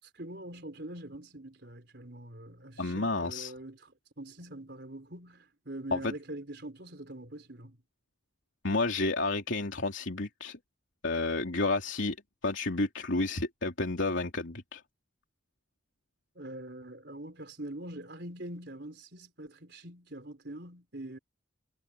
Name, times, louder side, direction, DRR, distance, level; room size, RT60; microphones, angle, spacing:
voice 1, 0.0-7.8 16.3-21.2, right 1 dB, 55° right, 4.3 m, -44 dB
voice 2, 2.8-3.5 5.9-6.1 8.6-10.6 11.0-12.2 12.4-14.8, left 2 dB, 75° left, 3.0 m, -30 dB
head